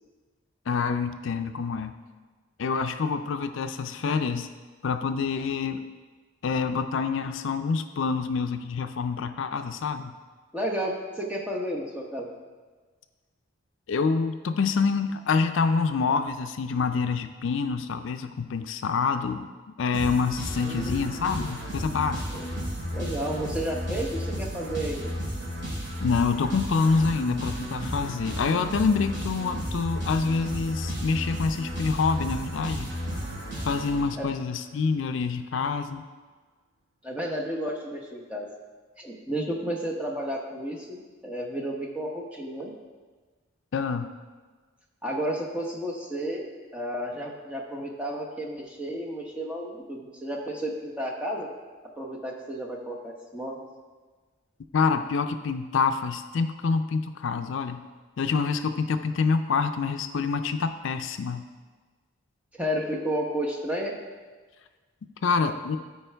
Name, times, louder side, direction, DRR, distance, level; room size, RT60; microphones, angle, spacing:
voice 1, 0.7-1.9 2.6-4.5 4.8-5.8 6.4-10.1 13.9-19.5 19.8-22.2 26.0-32.9 33.7-36.0 43.7-44.1 54.7-57.8 58.2-61.4 65.2-65.8, left 5 dB, 70° left, 9 dB, 0.4 m, -26 dB
voice 2, 10.5-12.3 20.6-21.5 22.3-22.4 22.9-25.1 34.2-34.3 37.0-38.5 39.0-41.0 41.2-42.7 45.0-46.4 46.7-51.5 52.0-53.6 62.6-63.9, equal, 5° right, -1 dB, 0.9 m, -32 dB
sound 1, 19.9-34.5, equal, 65° right, 2.7 m, -33 dB
13.5 x 4.5 x 3.4 m, 1.4 s
head